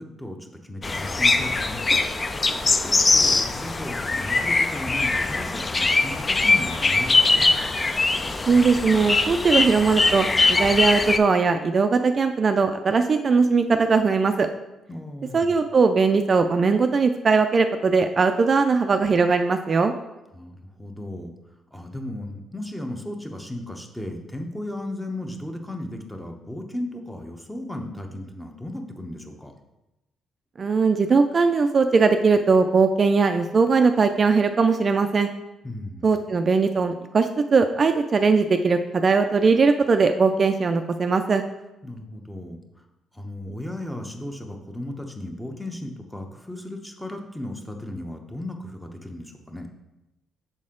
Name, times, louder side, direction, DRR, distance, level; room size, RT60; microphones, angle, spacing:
voice 1, 0.0-1.8 2.4-7.5 14.9-15.5 20.3-29.5 35.6-36.1 41.8-42.9 43.1-49.7, left 1 dB, 5° left, 4 dB, 0.8 m, -35 dB
sound 1, 0.8-11.2, left 3 dB, 30° left, 0.4 m, -22 dB
voice 2, 8.5-14.5 15.3-19.9 30.6-35.3 36.0-41.4, right 4 dB, 40° right, 7 dB, 0.3 m, -20 dB
6.5 x 4.2 x 3.7 m, 0.96 s
cardioid pair, 90°, 0 cm